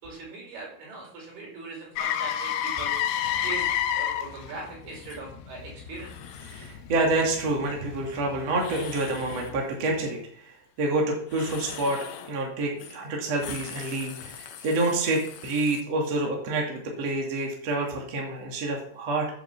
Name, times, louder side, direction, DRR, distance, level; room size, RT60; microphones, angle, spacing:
voice 1, 0.0-3.0 3.4-3.7 3.9-6.3, right 3 dB, 75° right, -2 dB, 6.9 m, -40 dB
Motor vehicle (road), 2.0-9.9 14.2-14.4, left 10 dB, 90° left, 3.1 m, -32 dB
sound 1, 4.9-5.2 5.9-6.8 8.5-9.6 11.2-12.4 12.8-13.0 13.3-15.8, left 8 dB, 65° left, 1.9 m, -43 dB
voice 2, 6.4-12.0 12.3-19.3, right 2 dB, 45° right, -1 dB, 3.4 m, -28 dB
10.5 x 8.7 x 7.3 m, 0.65 s
omnidirectional pair, 4.5 m